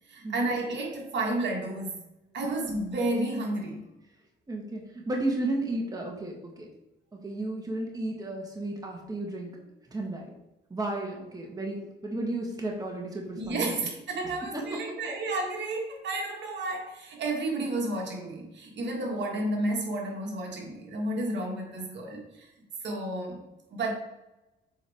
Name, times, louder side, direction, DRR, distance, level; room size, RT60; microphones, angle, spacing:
voice 1, 0.1-2.0 2.3-3.8 13.4-22.5 22.8-23.4 23.7-23.9, right 2 dB, 65° right, 0 dB, 1.7 m, -31 dB
voice 2, 4.5-6.7 7.1-9.6 9.9-10.2 10.7-13.7 14.5-14.8, right 2 dB, 20° right, 0 dB, 1.4 m, -33 dB
7.3 x 4.6 x 3.5 m, 0.96 s
cardioid pair, 90°, 20 cm